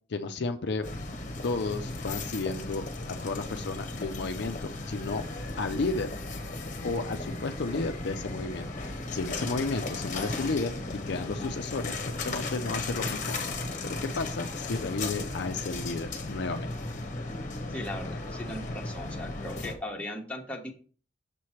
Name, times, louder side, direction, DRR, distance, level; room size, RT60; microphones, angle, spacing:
voice 1, 0.1-0.9 1.4-2.9 3.2-5.2 5.6-6.1 6.8-8.7 9.1-10.8 11.1-13.4 13.8-16.7, left 3 dB, 60° left, 6 dB, 0.5 m, -32 dB
sound 1, 0.8-19.7, left 2 dB, 45° left, 1.0 m, -36 dB
voice 2, 17.7-20.7, left 1 dB, 5° left, -1 dB, 1.2 m, -38 dB
6.8 x 3.2 x 5.7 m, 0.41 s
head